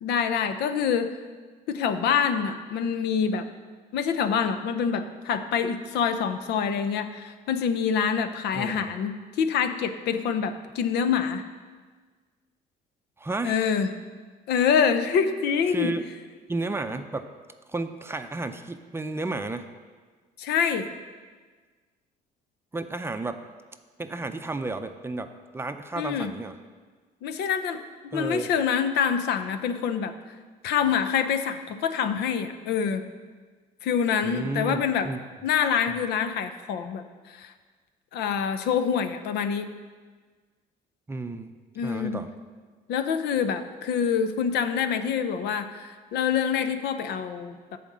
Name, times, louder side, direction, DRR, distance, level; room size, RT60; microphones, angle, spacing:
voice 1, 0.0-1.1 1.7-3.5 3.9-11.4 13.4-13.9 14.5-15.9 20.4-20.9 26.0-26.3 27.2-30.1 30.6-33.1 33.8-35.1 35.4-37.5 38.1-39.7 41.8-42.2 42.9-47.8, left 7 dB, 80° left, 10 dB, 0.7 m, -26 dB
voice 2, 13.2-13.6 15.7-16.0 16.5-17.3 17.7-19.7 22.7-23.4 24.0-26.6 28.1-28.5 34.2-35.2 41.1-42.3, right 2 dB, 15° right, 8 dB, 0.5 m, -32 dB
10.5 x 4.3 x 7.4 m, 1.5 s
cardioid pair, 110°, 17 cm